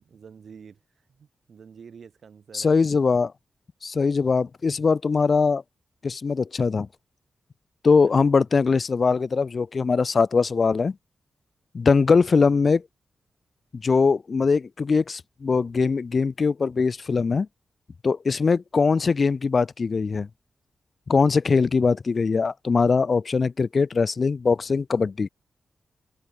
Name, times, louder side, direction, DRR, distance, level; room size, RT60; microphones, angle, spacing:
voice 1, 0.0-2.8 7.9-8.1 12.4-12.6 23.1-23.4, right 6 dB, 65° right, 4.8 m, -48 dB
voice 2, 2.5-3.3 3.8-5.6 6.0-6.9 7.8-10.9 11.7-12.8 13.7-17.5 18.0-20.3 21.1-25.3, left 4 dB, 45° left, 0.3 m, -21 dB
open air
wide cardioid pair, 110°, 0 cm